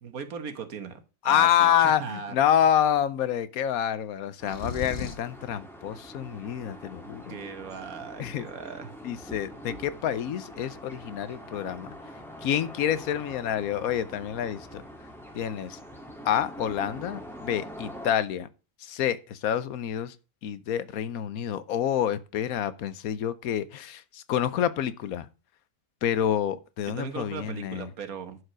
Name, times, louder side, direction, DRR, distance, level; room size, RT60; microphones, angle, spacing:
voice 1, 0.0-2.4 7.3-8.9 26.9-28.4, right 6 dB, 80° right, 1.7 m, -38 dB
voice 2, 1.2-7.4 8.2-8.5 9.0-11.9 12.4-14.8 15.3-15.8 16.2-18.5 18.8-20.1 20.4-25.3 26.0-27.9, left 10 dB, 90° left, 1.2 m, -27 dB
sound 1, 4.4-18.1, equal, ahead, 1.6 m, -44 dB
sound 2, 4.5-5.4, left 4 dB, 45° left, 1.2 m, -35 dB
11.0 x 4.8 x 6.2 m
omnidirectional pair, 1.5 m